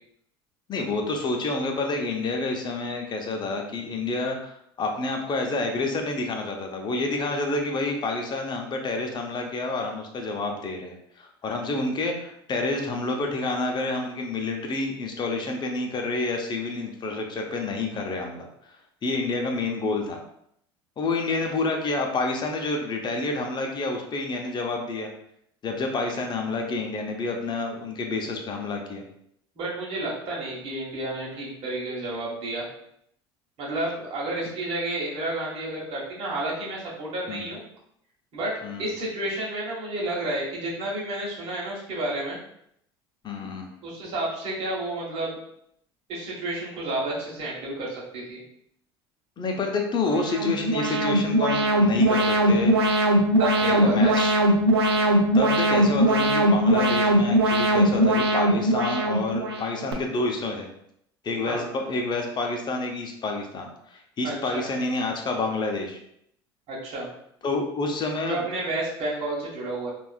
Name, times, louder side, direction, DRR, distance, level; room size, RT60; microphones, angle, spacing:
voice 1, 0.7-18.5 19.0-20.2 21.0-25.1 25.6-29.0 37.3-37.5 38.6-38.9 43.2-43.7 49.4-52.7 53.6-54.4 55.3-60.7 61.2-66.0 67.4-68.5, left 3 dB, 35° left, 2 dB, 0.7 m, -28 dB
voice 2, 29.5-32.6 33.6-37.6 38.3-42.4 43.8-45.4 46.1-48.4 53.4-54.1 61.4-61.6 64.2-64.7 66.7-67.1 68.2-69.9, right 1 dB, 50° right, -4 dB, 1.4 m, -31 dB
Alarm, 50.0-59.9, right 1 dB, 90° right, 0.4 m, -21 dB
3.4 x 2.5 x 2.3 m, 0.72 s
hypercardioid pair, 70°, 13 cm